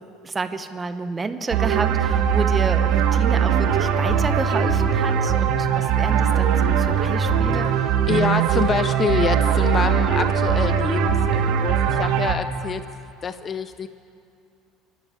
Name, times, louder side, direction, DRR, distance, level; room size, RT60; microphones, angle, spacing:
voice 1, 0.0-7.7, right 4 dB, 15° right, 10 dB, 0.8 m, -30 dB
sound 1, 1.5-12.4, right 7 dB, 60° right, 1.5 m, -20 dB
voice 2, 8.1-12.8 13.2-13.9, left 6 dB, 25° left, 12 dB, 0.5 m, -26 dB
24.0 x 12.0 x 9.4 m, 2.5 s
cardioid pair, 165°, 0 cm